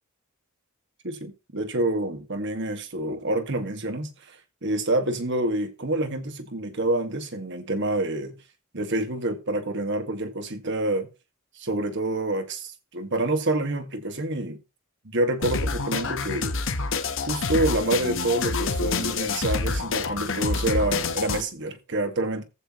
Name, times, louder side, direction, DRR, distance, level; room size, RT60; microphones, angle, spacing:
voice 1, 1.0-8.4 8.7-11.1 11.6-14.6 15.0-16.8 17.3-22.4, right 1 dB, 55° right, 1.8 m, -27 dB
sound 1, 15.4-21.4, left 4 dB, 60° left, 1.2 m, -27 dB
15.0 x 6.6 x 3.0 m
head